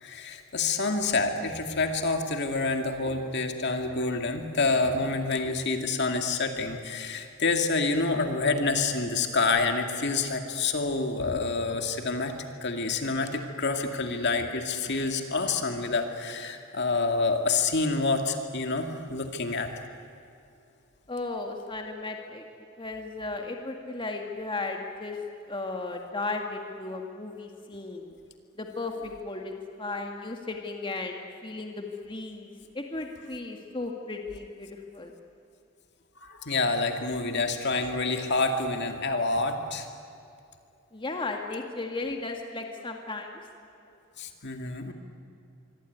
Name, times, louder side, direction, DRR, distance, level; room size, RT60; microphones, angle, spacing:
voice 1, 0.0-19.7 21.8-21.9 36.2-39.9 44.2-44.9, left 3 dB, 55° left, 4 dB, 2.4 m, -28 dB
voice 2, 2.8-3.3 21.1-22.4 22.8-25.2 25.5-28.2 28.6-35.1 40.9-43.4, left 3 dB, 25° left, 2 dB, 2.0 m, -35 dB
25.5 x 24.0 x 9.5 m, 2.6 s
head